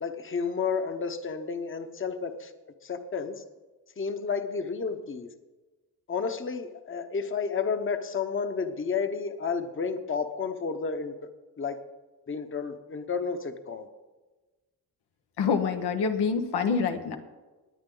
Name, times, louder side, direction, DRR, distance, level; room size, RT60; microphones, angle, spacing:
voice 1, 0.0-2.5 2.8-3.4 4.0-5.3 6.1-11.1 11.6-11.8 12.3-13.9, left 5 dB, 30° left, 8 dB, 1.0 m, -31 dB
voice 2, 15.4-17.2, left 5 dB, 90° left, 5 dB, 1.4 m, -26 dB
19.0 x 9.4 x 3.9 m, 1.2 s
cardioid pair, 100°, 39 cm